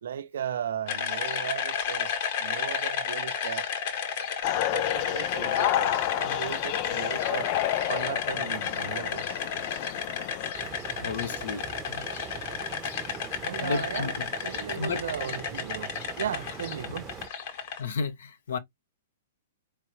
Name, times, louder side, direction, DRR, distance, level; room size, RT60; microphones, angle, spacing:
voice 1, 0.0-3.7 4.7-7.5 7.9-9.4 13.4-17.1, right 9 dB, 75° right, 0.6 m, -36 dB
sound 1, 0.9-17.8, left 7 dB, 55° left, 1.9 m, -32 dB
sound 2, 4.4-10.5, left 13 dB, 40° left, 0.4 m, -30 dB
sound 3, 10.5-17.3, right 5 dB, 20° right, 0.8 m, -42 dB
voice 2, 11.0-11.6 11.9-12.1 13.6-14.1 14.7-15.0 17.8-18.6, left 5 dB, 75° left, 1.3 m, -32 dB
4.6 x 3.5 x 3.2 m
hypercardioid pair, 135°, 0 cm